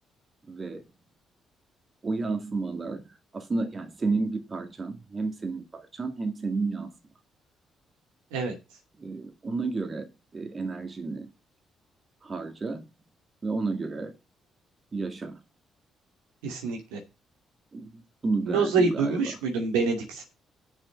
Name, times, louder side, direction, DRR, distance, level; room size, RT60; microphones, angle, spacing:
voice 1, 0.5-0.9 2.0-6.9 9.0-11.3 12.2-12.9 13.4-14.2 14.9-15.4 17.7-19.4, right 3 dB, 40° right, 2.1 m, -31 dB
voice 2, 16.4-17.0 18.5-20.3, right 4 dB, 80° right, 2.6 m, -26 dB
7.2 x 6.5 x 7.9 m
hypercardioid pair, 45°, 0 cm